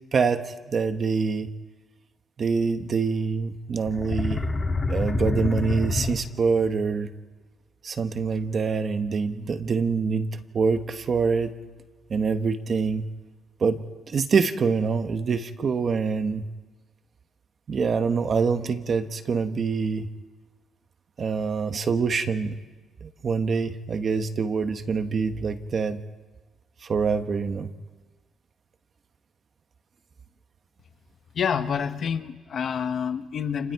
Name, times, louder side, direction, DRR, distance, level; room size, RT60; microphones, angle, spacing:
voice 1, 0.1-1.5 2.4-4.4 4.9-7.1 7.8-11.5 12.1-13.0 13.6-13.8 14.1-16.4 17.7-20.1 21.2-22.5 23.0-26.0 26.8-27.7, right 5 dB, 35° right, 1.1 m, -25 dB
sound 1, 3.9-6.7, left 3 dB, 20° left, 1.6 m, -27 dB
voice 2, 31.4-33.7, left 7 dB, 45° left, 1.0 m, -28 dB
29.5 x 29.0 x 4.7 m
cardioid pair, 175°, 0 cm